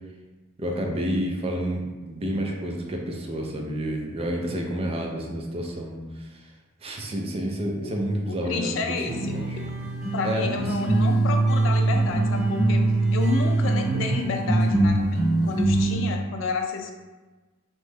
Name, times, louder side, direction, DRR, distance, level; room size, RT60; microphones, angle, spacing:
voice 1, 0.6-6.0 6.8-9.6 10.2-10.6, right 1 dB, 30° right, 1 dB, 0.4 m, -29 dB
voice 2, 8.3-9.7 10.1-12.8 13.1-15.2 15.4-16.9, left 4 dB, 70° left, 4 dB, 0.4 m, -30 dB
sound 1, 9.0-15.9, right 2 dB, 5° right, 1.0 m, -23 dB
3.0 x 2.2 x 3.2 m, 1.2 s
head